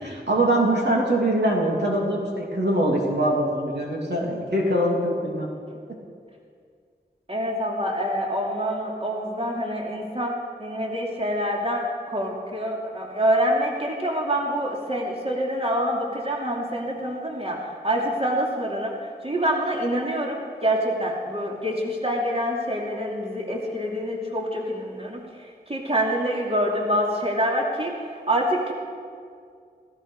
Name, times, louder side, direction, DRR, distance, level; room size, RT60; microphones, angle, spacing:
voice 1, 0.0-5.5 5.9-6.0, right 1 dB, 80° right, -3 dB, 2.9 m, -23 dB
voice 2, 7.3-28.7, equal, 35° right, -2 dB, 2.7 m, -26 dB
16.0 x 15.5 x 4.8 m, 2.1 s
wide cardioid pair, 45°, 17 cm